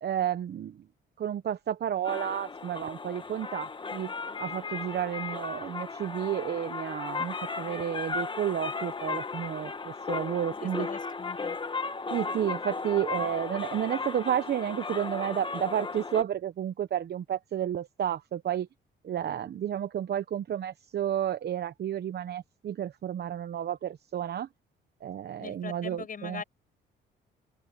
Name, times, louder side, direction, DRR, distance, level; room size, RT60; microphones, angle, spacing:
voice 1, 0.0-0.8 1.2-4.1 4.4-10.9 12.1-18.7 19.0-24.5 25.0-26.4, right 10 dB, 55° right, 0.9 m, -31 dB
sound 1, 2.0-16.2, left 4 dB, 25° left, 1.3 m, -36 dB
voice 2, 10.6-11.6 25.4-26.4, left 6 dB, 45° left, 6.3 m, -41 dB
open air
cardioid pair, 90°, 20 cm